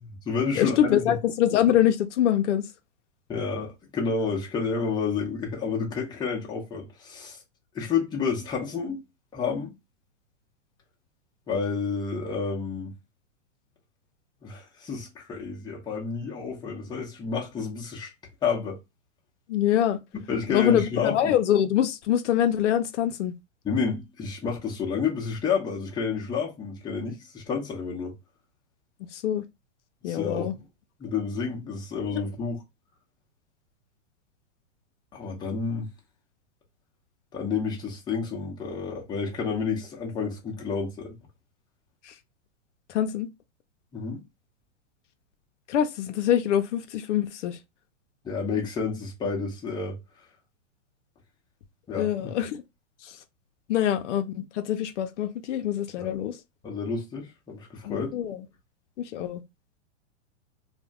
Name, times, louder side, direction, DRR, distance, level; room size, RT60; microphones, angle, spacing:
voice 1, 0.0-1.2 3.3-7.4 7.7-9.0 9.3-9.7 11.5-12.9 14.4-18.1 18.4-18.8 20.3-21.1 23.6-28.1 30.1-30.5 31.0-32.6 35.1-35.9 37.3-41.2 43.9-44.2 48.2-50.0 51.9-52.1 56.0-56.1 56.6-58.1, left 5 dB, 10° left, 0.7 m, -30 dB
voice 2, 0.6-2.7 19.5-20.0 20.5-23.3 29.1-29.5 30.0-30.5 32.1-32.2 42.0-42.1 42.9-43.3 45.7-47.6 51.9-52.6 53.0-53.2 53.7-56.4 57.8-58.4 59.0-59.4, left 10 dB, 70° left, 0.5 m, -24 dB
2.5 x 2.1 x 3.5 m
hypercardioid pair, 130°, 38 cm